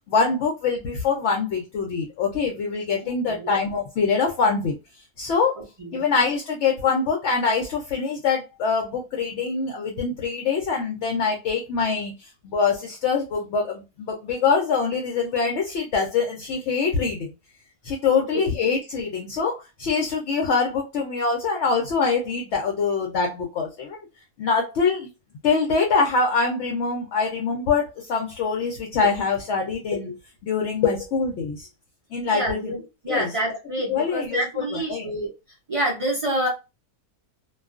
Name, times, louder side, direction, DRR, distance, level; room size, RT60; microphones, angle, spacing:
voice 1, 0.1-4.7 5.2-5.6 5.9-17.3 17.8-24.1 24.4-25.1 25.4-30.1 30.4-31.7 32.1-32.7 33.1-33.3 33.9-35.1, left 5 dB, 70° left, 0.7 m, -24 dB
voice 2, 3.0-3.6 5.8-6.0 18.1-18.5 32.3-32.8 33.0-35.3 35.7-36.5, right 1 dB, 50° right, 0.3 m, -27 dB
2.3 x 2.3 x 2.3 m
omnidirectional pair, 1.6 m